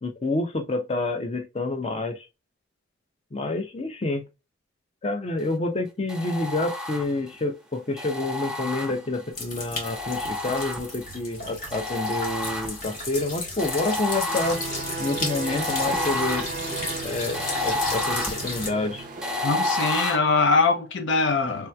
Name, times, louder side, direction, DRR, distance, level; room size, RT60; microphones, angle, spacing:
voice 1, 0.0-2.3 3.3-4.2 5.0-14.6 15.0-16.5 17.0-19.0, left 2 dB, 35° left, 0.6 m, -28 dB
sound 1, 6.1-7.4 8.0-9.3 9.8-11.2 11.7-13.0 13.6-20.2, left 2 dB, 5° right, 0.6 m, -30 dB
sound 2, 9.3-18.7, left 2 dB, 50° left, 1.4 m, -34 dB
sound 3, 14.3-19.9, right 5 dB, 50° right, 0.4 m, -36 dB
voice 2, 19.4-21.7, left 4 dB, 80° left, 0.6 m, -22 dB
3.3 x 3.0 x 2.2 m
head